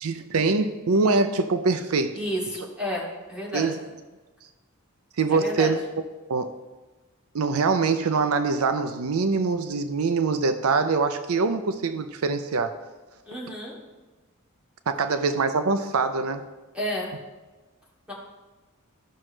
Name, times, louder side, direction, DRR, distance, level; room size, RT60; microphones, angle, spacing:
voice 1, 0.0-2.1 3.5-3.8 5.2-5.8 6.3-6.5 7.3-12.7 14.9-16.4, right 4 dB, 85° right, 9 dB, 0.5 m, -24 dB
voice 2, 2.1-3.7 5.3-5.7 13.2-13.8 16.7-17.1 18.1-18.2, equal, 5° right, -5 dB, 2.5 m, -31 dB
14.0 x 6.1 x 3.3 m, 1.2 s
head